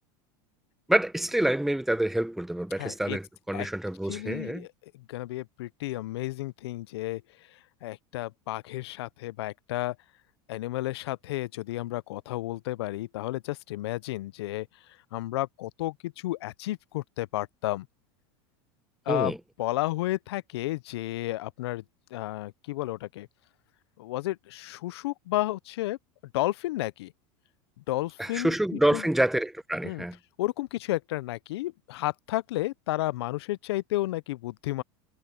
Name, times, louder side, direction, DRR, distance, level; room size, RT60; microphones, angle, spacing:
voice 1, 0.9-4.7 19.1-19.4 28.2-30.2, right 1 dB, ahead, 0.8 m, -27 dB
voice 2, 2.8-3.2 3.5-3.7 4.1-4.7 4.9-7.2 7.8-10.0 10.5-14.7 15.1-17.9 19.1-19.3 19.6-21.8 22.1-23.3 24.0-26.0 26.3-27.1 27.9-29.0 29.8-30.0 30.4-34.8, left 17 dB, 85° left, 0.5 m, -32 dB
supercardioid pair, 130°, 13 cm